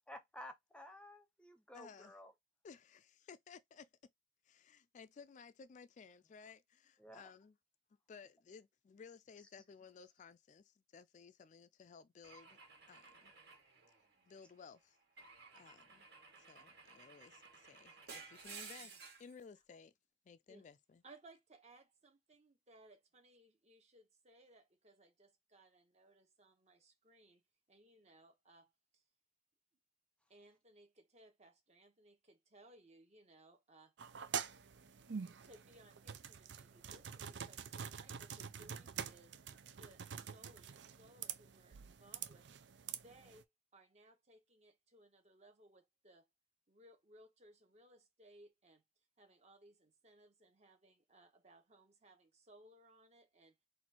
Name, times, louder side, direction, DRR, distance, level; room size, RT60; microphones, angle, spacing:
voice 1, 0.0-2.3 7.0-7.2, left 1 dB, 5° left, 0.7 m, -53 dB
voice 2, 1.7-2.1 2.6-3.0 3.3-3.9 4.5-7.5 8.1-12.6 12.9-13.3 14.3-15.0 15.5-16.1 16.4-18.9 19.2-19.9 20.3-21.0, left 5 dB, 45° left, 0.3 m, -57 dB
Car / Engine / Glass, 12.2-14.5 15.2-19.3, right 4 dB, 65° right, 2.2 m, -55 dB
voice 3, 21.0-29.0 30.3-33.9 35.4-39.4 39.7-42.5 42.9-43.5 43.7-46.3 46.7-48.8 49.2-53.6, right 1 dB, 40° right, 1.3 m, -64 dB
sound 1, 34.0-43.4, right 7 dB, 80° right, 0.5 m, -46 dB
4.2 x 2.6 x 4.4 m
head